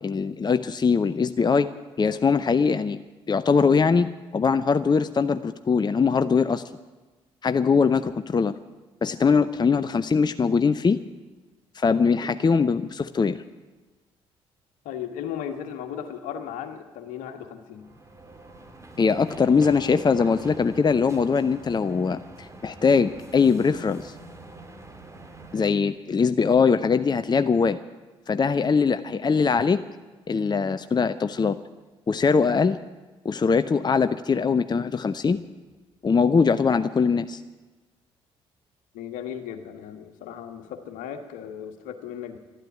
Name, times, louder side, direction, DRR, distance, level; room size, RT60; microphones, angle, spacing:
voice 1, 0.0-1.7 2.0-3.0 3.3-6.6 7.4-8.5 9.0-11.0 11.8-13.4 19.0-24.1 25.5-27.8 28.3-29.8 30.3-31.6 32.1-32.8 33.2-35.4 36.0-37.4, left 5 dB, 30° left, 12 dB, 0.7 m, -22 dB
voice 2, 14.8-17.9 35.0-35.1 38.9-42.4, left 9 dB, 70° left, 7 dB, 1.7 m, -36 dB
sound 1, 17.7-25.7, right 2 dB, 20° right, 2.3 m, -45 dB
12.5 x 12.0 x 9.5 m, 1.2 s
hypercardioid pair, 45°, 14 cm